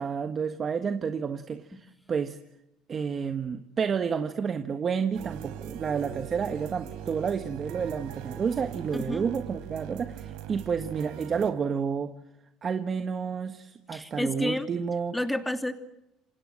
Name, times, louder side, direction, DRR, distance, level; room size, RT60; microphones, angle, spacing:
voice 1, 0.0-2.4 2.9-12.1 12.6-15.2, right 6 dB, 35° right, 8 dB, 1.5 m, -30 dB
sound 1, 5.1-11.5, right 9 dB, 80° right, 3.8 m, -40 dB
voice 2, 8.9-9.2 13.9-14.7 15.1-15.7, left 1 dB, 5° left, 8 dB, 2.7 m, -30 dB
28.0 x 25.5 x 7.6 m, 0.85 s
cardioid pair, 115°, 0 cm